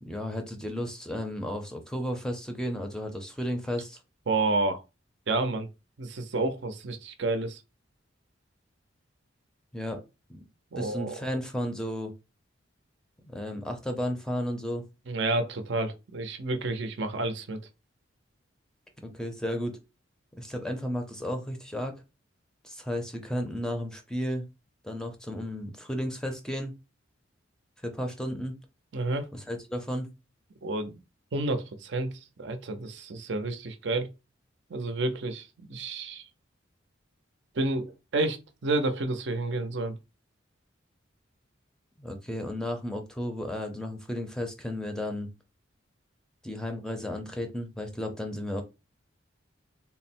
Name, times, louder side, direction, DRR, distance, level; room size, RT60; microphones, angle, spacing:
voice 1, 0.0-4.0 9.7-10.0 10.3-10.4 10.8-12.1 13.2-14.8 19.0-19.8 20.4-22.0 22.6-24.5 24.8-26.7 27.8-28.6 29.3-30.1 42.0-45.3 46.4-48.6, equal, 5° left, 0.5 m, -33 dB
voice 2, 4.3-4.8 5.3-5.7 6.0-7.6 10.7-11.2 15.1-17.6 28.9-29.3 30.6-31.0 31.3-34.1 34.7-36.3 37.5-40.0, right 2 dB, 60° right, 0.5 m, -30 dB
3.6 x 2.0 x 4.3 m
head